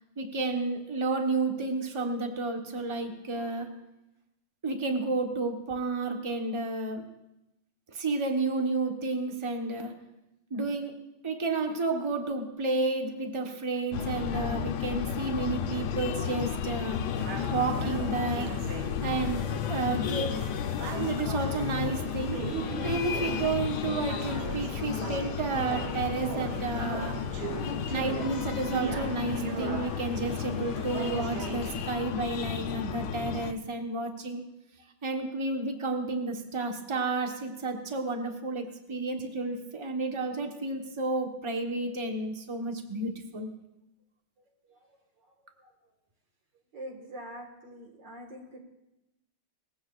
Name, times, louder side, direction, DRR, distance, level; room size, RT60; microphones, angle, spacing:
voice 1, 0.2-3.8 4.6-7.1 7.9-10.0 10.5-17.0 17.5-18.5 19.0-20.5 20.9-22.5 22.8-27.2 27.9-34.4 35.0-43.5, right 3 dB, 30° right, 4 dB, 0.5 m, -31 dB
Breathing, 13.9-33.5, left 8 dB, 70° left, 1.0 m, -33 dB
sound 1, 17.2-31.7, right 7 dB, 75° right, 1.6 m, -39 dB
voice 2, 46.7-48.6, equal, 60° right, 1 dB, 2.2 m, -44 dB
20.0 x 15.5 x 2.4 m, 0.91 s
omnidirectional pair, 2.3 m